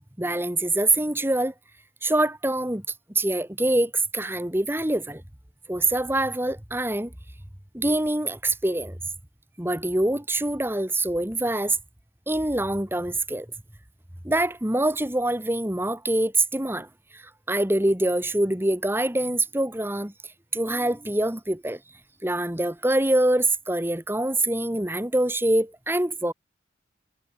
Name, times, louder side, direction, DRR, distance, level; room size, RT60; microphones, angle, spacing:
voice 1, 0.2-1.5 2.0-2.8 3.1-5.2 5.7-7.1 7.7-9.0 9.6-11.8 12.3-13.5 14.2-16.9 17.1-17.2 17.5-20.1 20.5-21.8 22.2-26.3, right 1 dB, 10° right, 1.7 m, -24 dB
head